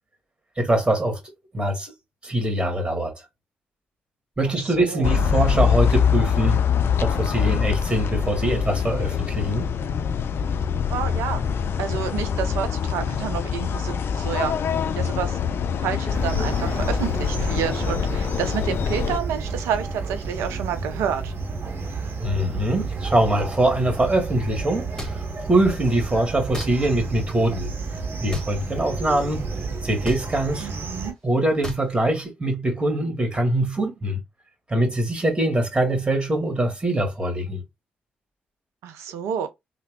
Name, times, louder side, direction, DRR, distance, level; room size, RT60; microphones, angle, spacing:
voice 1, 0.6-1.2 1.5-1.9 2.2-3.1 4.4-6.6 7.0-9.7 22.2-25.2 25.4-27.7 28.2-29.5 29.8-30.7 31.2-34.2 34.7-37.6, right 1 dB, 20° right, 1.8 m, -23 dB
voice 2, 4.7-5.1 10.9-11.4 11.8-15.4 15.8-21.3 30.6-31.1 38.8-39.5, right 8 dB, 75° right, 0.6 m, -29 dB
sound 1, 5.0-19.2, left 7 dB, 55° left, 0.4 m, -24 dB
sound 2, 16.1-31.1, right 3 dB, 50° right, 0.8 m, -31 dB
sound 3, 25.0-25.1 26.5-26.7 28.3-28.5 30.0-30.2 31.6-31.8, equal, 15° left, 1.4 m, -31 dB
3.3 x 2.0 x 3.5 m
hypercardioid pair, 40°, 5 cm